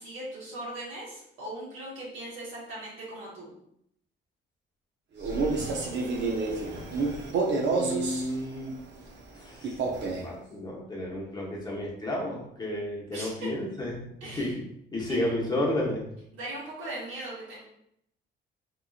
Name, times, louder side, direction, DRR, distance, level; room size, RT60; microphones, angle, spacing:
voice 1, 0.0-3.6 13.1-13.5 14.2-14.5 15.1-15.3 16.3-17.6, right 1 dB, 80° right, -6 dB, 1.3 m, -39 dB
Male speech man speaking, 5.2-8.3 9.6-10.3, right 3 dB, 65° right, 0.6 m, -28 dB
voice 2, 7.7-8.7 9.4-14.6 14.9-16.0, left 1 dB, 20° left, -4 dB, 0.9 m, -32 dB
3.0 x 2.6 x 2.4 m, 0.74 s
cardioid pair, 90°, 20 cm